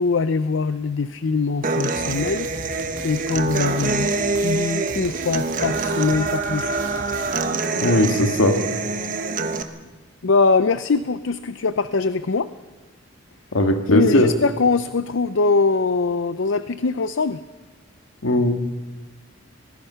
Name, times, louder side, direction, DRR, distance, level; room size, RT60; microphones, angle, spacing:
voice 1, 0.0-2.8 3.0-4.1 4.4-6.7 10.2-12.5 13.9-17.4, left 4 dB, 65° left, 13 dB, 0.5 m, -22 dB
Human voice / Acoustic guitar, 1.6-9.6, right 3 dB, 40° right, 1.1 m, -25 dB
sound 1, 1.9-7.7, right 1 dB, 75° right, 3.1 m, -38 dB
voice 2, 7.8-8.6 13.5-14.3 18.2-18.5, left 1 dB, 85° left, 5 dB, 2.0 m, -18 dB
24.5 x 19.0 x 5.8 m, 1.3 s
head